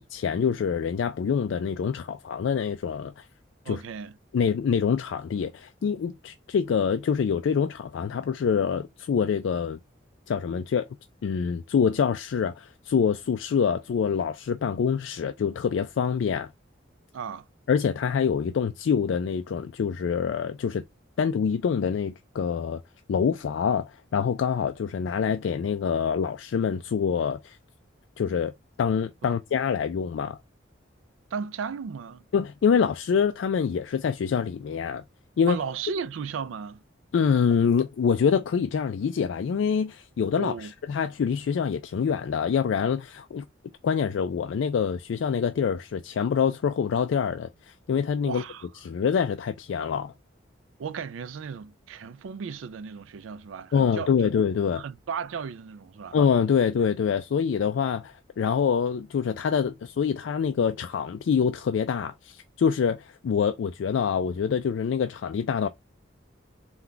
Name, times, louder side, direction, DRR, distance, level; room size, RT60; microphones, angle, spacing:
voice 1, 0.0-3.2 3.7-3.8 4.3-9.8 10.3-10.9 11.2-16.5 17.7-20.8 21.2-22.8 23.1-27.6 28.2-28.5 28.8-30.4 32.3-35.0 35.4-35.6 37.1-43.4 43.8-48.4 48.8-50.1 53.7-54.8 56.1-65.7, left 6 dB, 70° left, 0.3 m, -25 dB
voice 2, 3.7-4.1 17.1-17.5 29.2-29.4 31.3-32.2 35.5-36.8 40.3-40.7 48.3-48.7 50.8-54.3 54.8-56.2, right 6 dB, 80° right, 0.4 m, -35 dB
3.9 x 2.3 x 4.4 m
head